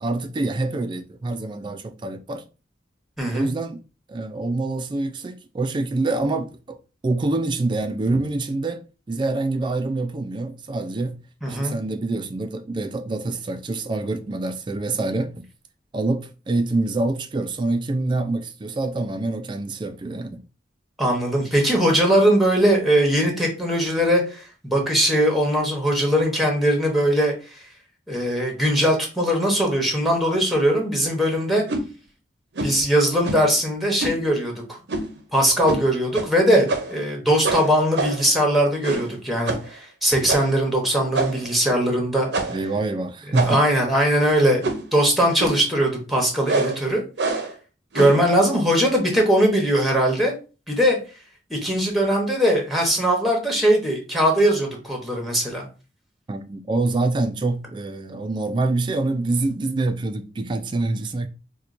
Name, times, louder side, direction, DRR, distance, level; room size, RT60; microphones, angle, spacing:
voice 1, 0.0-2.4 3.3-3.8 4.1-6.8 7.0-11.2 11.5-15.5 15.9-20.4 42.5-43.6 56.3-61.3, right 2 dB, 25° right, 0.3 m, -26 dB
voice 2, 3.2-3.5 11.4-11.7 21.0-27.6 28.1-31.6 32.6-34.8 35.3-42.3 43.3-47.0 47.9-50.3 50.7-51.0 51.5-55.7, equal, ahead, 0.8 m, -20 dB
sound 1, 31.7-31.9 32.6-32.8 33.2-33.5 34.0-34.2 34.9-35.2 35.7-35.8 36.1-36.3 36.7-37.0 37.4-38.3 38.8-39.2 39.5-39.7 40.3-40.6 41.1-41.5 42.3-42.7 43.3-43.8 44.6-44.9 45.4-45.7 46.5-46.8 47.2-47.5 47.9-48.3, right 3 dB, 70° right, 0.6 m, -26 dB
4.3 x 2.2 x 2.5 m
head